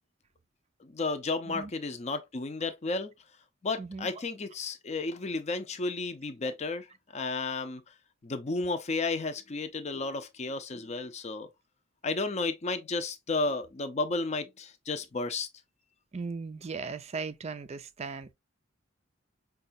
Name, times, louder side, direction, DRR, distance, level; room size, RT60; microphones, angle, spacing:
voice 1, 0.8-3.1 3.6-6.9 7.1-7.8 8.2-11.5 12.0-15.5, left 3 dB, 35° left, 0.5 m, -32 dB
voice 2, 16.1-18.3, right 4 dB, 30° right, 0.4 m, -37 dB
5.2 x 2.3 x 2.6 m
head